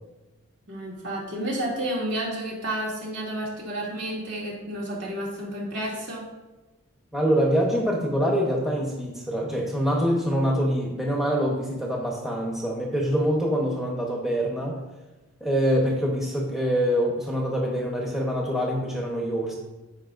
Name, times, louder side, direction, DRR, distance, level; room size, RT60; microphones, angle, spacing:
voice 1, 0.7-6.3, right 1 dB, 55° right, -5 dB, 2.6 m, -31 dB
voice 2, 7.1-14.8 15.4-19.5, equal, ahead, -2 dB, 1.0 m, -25 dB
15.5 x 5.4 x 2.6 m, 1.1 s
head